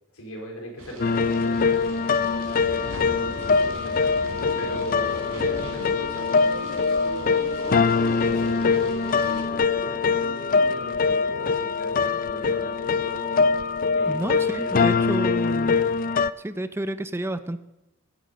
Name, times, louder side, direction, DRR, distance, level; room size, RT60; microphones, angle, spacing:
voice 1, 0.1-13.4 13.9-15.7, equal, 85° left, 1 dB, 4.0 m, -38 dB
sound 1, 0.8-9.5, right 1 dB, 70° right, 3.6 m, -40 dB
sound 2, 1.0-16.3, left 5 dB, 40° left, 0.4 m, -23 dB
sound 3, 7.2-10.9, left 1 dB, 25° left, 2.2 m, -41 dB
voice 2, 14.1-15.7 16.4-17.6, right 1 dB, 10° right, 12 dB, 0.5 m, -30 dB
15.5 x 9.2 x 6.8 m, 0.94 s
head